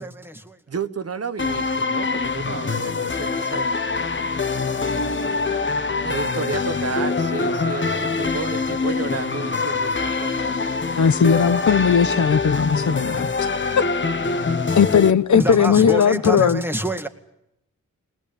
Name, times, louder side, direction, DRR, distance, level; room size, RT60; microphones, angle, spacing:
voice 1, 0.0-0.6 15.3-17.1, right 1 dB, 5° right, 2.0 m, -26 dB
voice 2, 0.7-3.8 6.0-10.6, right 5 dB, 45° right, 1.1 m, -31 dB
sound 1, 1.4-15.1, left 4 dB, 35° left, 1.2 m, -24 dB
voice 3, 11.0-13.5 13.8-13.9 14.8-16.6, left 7 dB, 60° left, 0.9 m, -18 dB
21.5 x 20.0 x 8.8 m
wide cardioid pair, 110°, 34 cm